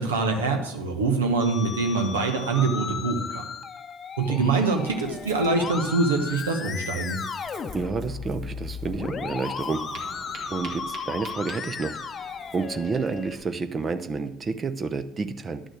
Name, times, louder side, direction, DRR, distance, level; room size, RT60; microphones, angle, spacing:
voice 1, 0.0-3.4 4.2-7.2, right 3 dB, 75° right, 4 dB, 1.2 m, -24 dB
Musical instrument, 1.4-13.4, left 5 dB, 35° left, 0.8 m, -35 dB
Ocean, 4.7-13.5, right 4 dB, 50° right, 2.1 m, -47 dB
voice 2, 7.7-9.8 10.5-12.0 12.5-15.7, right 4 dB, 30° right, 9 dB, 0.7 m, -30 dB
11.0 x 6.3 x 6.4 m, 0.86 s
figure-of-eight pair, 60°, 0 cm